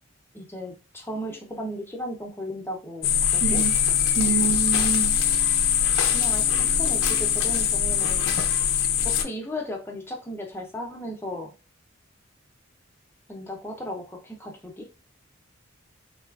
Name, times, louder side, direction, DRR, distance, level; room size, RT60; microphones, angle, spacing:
voice 1, 0.3-3.6 6.1-8.4 9.0-11.5 13.3-14.9, equal, 10° left, 0.4 m, -36 dB
sound 1, 3.0-9.2, left 8 dB, 75° left, 0.4 m, -22 dB
voice 2, 3.4-3.7 4.2-5.2, right 6 dB, 75° right, 0.7 m, -26 dB
3.9 x 2.3 x 2.2 m
head